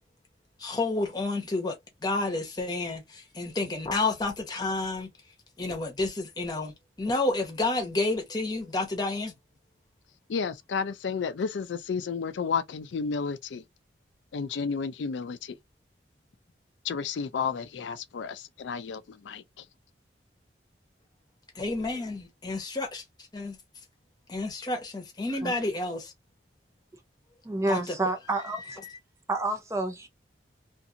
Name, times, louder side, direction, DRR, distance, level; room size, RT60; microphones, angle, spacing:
voice 1, 0.6-5.1 5.6-9.3 21.5-23.0 23.3-23.6 24.3-26.1 27.7-28.0 28.8-29.0, left 2 dB, 25° left, 0.9 m, -30 dB
voice 2, 10.3-13.6 14.3-15.6 16.8-19.7, left 5 dB, 85° left, 0.4 m, -32 dB
voice 3, 27.4-28.8 29.3-30.1, right 2 dB, 15° right, 0.4 m, -29 dB
2.6 x 2.5 x 2.6 m
head